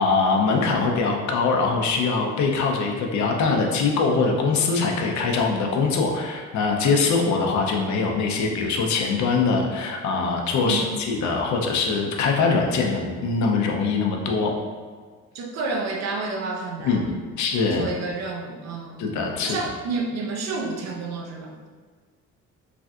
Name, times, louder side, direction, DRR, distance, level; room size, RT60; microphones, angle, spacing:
voice 1, 0.0-14.5 16.8-17.1 17.4-17.9 19.0-19.6, left 4 dB, 70° left, 2 dB, 0.5 m, -22 dB
voice 2, 10.6-11.0 15.3-17.2 17.7-19.0 19.4-21.5, right 3 dB, 60° right, 2 dB, 0.5 m, -30 dB
3.3 x 2.6 x 2.3 m, 1.5 s
cardioid pair, 120°, 30 cm